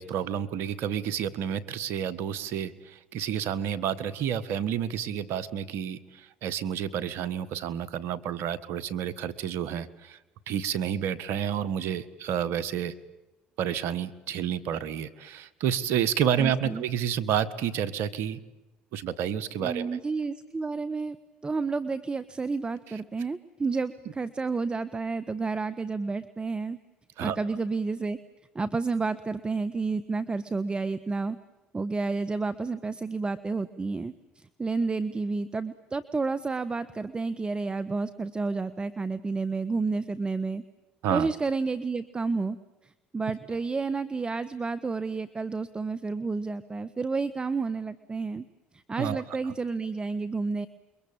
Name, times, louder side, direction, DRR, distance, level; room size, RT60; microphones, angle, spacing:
voice 1, 0.0-10.2 10.5-12.9 13.6-18.4 18.9-20.0 27.2-27.4 41.0-41.3 49.0-49.2, right 9 dB, 70° right, 16 dB, 1.6 m, -30 dB
voice 2, 16.4-16.8 19.6-21.2 21.4-26.8 27.2-28.2 28.5-31.4 31.7-34.1 34.6-40.6 41.1-42.6 42.8-48.4 48.7-50.7, right 4 dB, 25° right, 13 dB, 1.3 m, -30 dB
28.5 x 23.0 x 8.8 m, 1.0 s
supercardioid pair, 70°, 4 cm